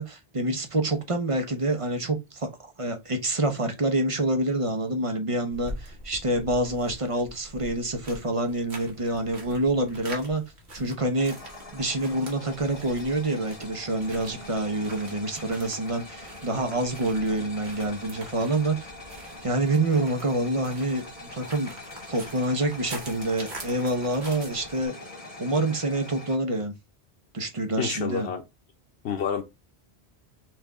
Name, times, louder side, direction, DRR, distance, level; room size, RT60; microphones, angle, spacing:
voice 1, 0.0-2.5 2.8-10.4 10.7-11.4 11.7-18.9 19.4-21.0 21.3-21.7 22.1-24.9 25.4-26.7 27.3-28.3, right 2 dB, 35° right, 0.9 m, -27 dB
sound 1, 5.5-24.9, right 1 dB, 85° right, 1.8 m, -45 dB
sound 2, 11.2-26.4, left 2 dB, 35° left, 1.1 m, -43 dB
voice 2, 27.8-28.4 29.0-29.4, left 7 dB, 85° left, 1.0 m, -28 dB
5.7 x 2.6 x 3.5 m
omnidirectional pair, 1.1 m